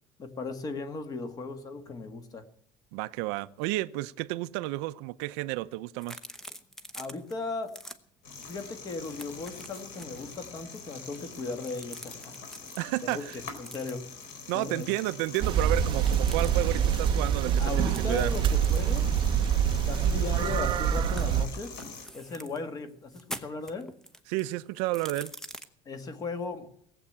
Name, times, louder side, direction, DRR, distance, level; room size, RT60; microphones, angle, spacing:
voice 1, 0.2-2.4 6.9-7.7 8.5-12.5 13.0-13.2 13.6-14.0 14.5-14.9 17.6-19.1 19.6-21.7 22.1-23.9 25.8-26.7, left 3 dB, 25° left, 1.5 m, -37 dB
voice 2, 2.9-6.2 12.8-13.4 14.5-18.3 24.3-25.3, right 19 dB, 85° right, 0.7 m, -31 dB
sound 1, 6.0-7.3 7.6-8.0 8.4-8.6 8.8-10.2 10.9-12.8 13.4-14.2 16.0-16.5 17.9-20.7 21.0-22.6 23.1-25.6, equal, 5° left, 0.8 m, -45 dB
sound 2, 8.2-22.1, left 5 dB, 65° left, 3.8 m, -45 dB
sound 3, 15.4-21.5, right 8 dB, 35° right, 0.7 m, -25 dB
18.0 x 8.0 x 8.5 m
cardioid pair, 170°, 14 cm